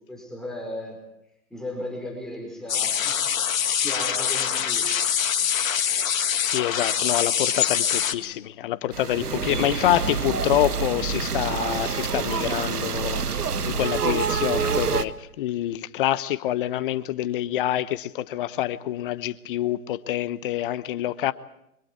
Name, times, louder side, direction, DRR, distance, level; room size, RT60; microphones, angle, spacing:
voice 1, 0.1-1.0 1.5-3.2 3.7-4.9 5.4-5.7 8.2-8.5 9.2-9.7, left 1 dB, ahead, -1 dB, 4.8 m, -36 dB
sound 1, 2.7-8.1, left 8 dB, 60° left, 1.9 m, -24 dB
voice 2, 6.0-21.3, left 13 dB, 35° left, 15 dB, 1.1 m, -27 dB
sound 2, 8.9-15.1, right 6 dB, 85° right, 1.4 m, -27 dB
29.0 x 25.0 x 4.6 m, 0.80 s
hypercardioid pair, 135°, 45 cm